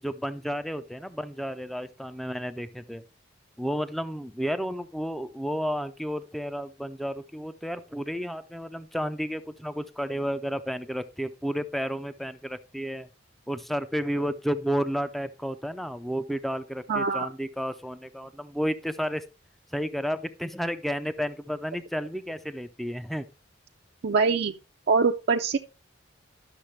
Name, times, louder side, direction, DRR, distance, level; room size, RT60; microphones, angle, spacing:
voice 1, 0.0-3.0 3.6-13.1 13.5-19.2 19.7-23.3, equal, ahead, 0.4 m, -32 dB
voice 2, 16.9-17.3 24.0-24.5 24.9-25.6, right 4 dB, 60° right, 0.5 m, -23 dB
11.5 x 6.5 x 3.2 m
head